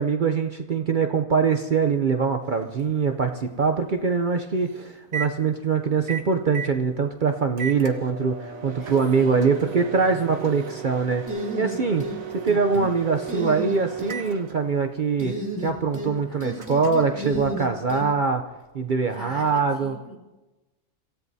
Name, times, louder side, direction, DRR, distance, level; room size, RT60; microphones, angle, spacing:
voice 1, 0.0-12.1 12.3-15.3 15.6-18.4 18.7-20.0, right 5 dB, 75° right, 5 dB, 0.4 m, -23 dB
Microwave oven, 2.5-18.1, right 7 dB, 60° right, 1.4 m, -37 dB
voice 2, 8.8-10.2 16.3-16.6 19.1-20.2, equal, 35° left, -2 dB, 4.0 m, -43 dB
sound 1, 11.3-12.2 12.5-12.9 13.3-14.1 15.2-16.1 16.4-18.0, equal, 10° right, 2.6 m, -31 dB
26.5 x 16.0 x 2.7 m, 1.1 s
omnidirectional pair, 1.7 m